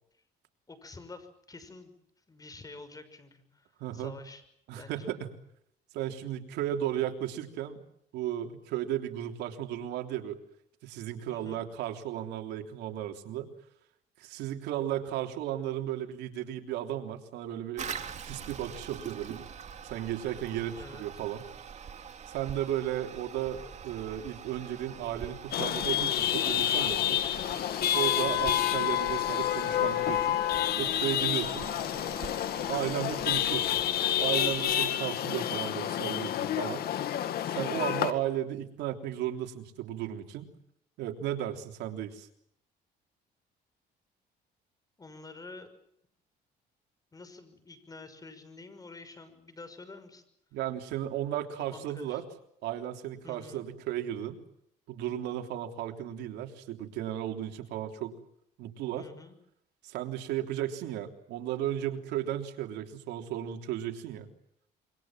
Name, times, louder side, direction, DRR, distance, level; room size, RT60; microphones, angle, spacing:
voice 1, 0.7-1.9 2.3-3.7 3.9-4.4 4.7-5.1 11.3-11.7 20.7-21.2 31.7-32.2 45.0-45.7 47.1-50.2 51.7-52.2 53.2-53.6 59.0-59.4, left 3 dB, 20° left, 10 dB, 6.0 m, -48 dB
voice 2, 3.8-4.1 4.7-5.3 5.9-7.8 8.1-10.4 10.8-13.5 14.2-17.9 18.2-19.5 19.8-21.4 22.3-27.2 27.9-30.4 30.8-31.7 32.7-33.8 34.2-36.8 37.5-40.5 41.0-42.3 50.5-52.2 52.6-54.4 54.9-58.1 58.6-59.1 59.8-64.3, right 11 dB, 85° right, 4 dB, 3.4 m, -34 dB
Toilet flush, 17.8-34.8, right 7 dB, 45° right, 2.7 m, -45 dB
Chatter / Vehicle horn car horn honking / Traffic noise roadway noise, 25.5-38.1, left 11 dB, 65° left, 2.3 m, -29 dB
27.5 x 24.5 x 7.6 m, 0.73 s
cardioid pair, 110°, 17 cm